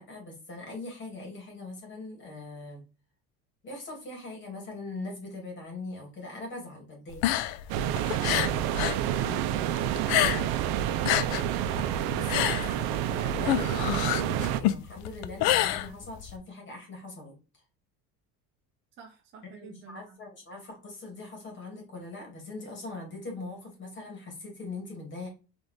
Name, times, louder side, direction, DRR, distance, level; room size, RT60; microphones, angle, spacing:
voice 1, 0.0-2.8 3.6-7.3 9.1-9.5 12.1-17.4 19.5-25.3, left 2 dB, 30° left, 0 dB, 2.1 m, -41 dB
sound 1, 7.1-9.0 9.3-10.6 10.9-16.4, left 13 dB, 70° left, 0.6 m, -27 dB
sound 2, 7.7-14.6, right 11 dB, 75° right, 0.6 m, -29 dB
voice 2, 19.0-20.2, right 5 dB, 30° right, 1 dB, 0.8 m, -48 dB
4.1 x 3.3 x 3.3 m, 0.31 s
cardioid pair, 160°, 37 cm